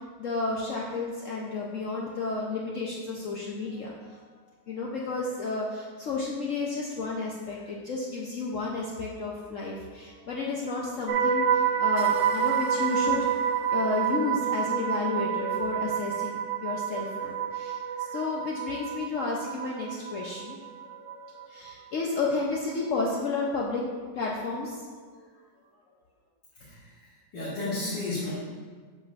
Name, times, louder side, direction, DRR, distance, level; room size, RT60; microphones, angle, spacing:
voice 1, 0.2-4.2 4.7-13.4 13.7-25.3, left 3 dB, 60° left, -3 dB, 0.9 m, -32 dB
sound 1, 11.1-21.1 21.4-21.7, right 7 dB, 80° right, 0.6 m, -28 dB
voice 2, 27.3-28.3, left 2 dB, 80° left, -9 dB, 2.1 m, -32 dB
7.8 x 7.8 x 2.5 m, 1.5 s
omnidirectional pair, 1.9 m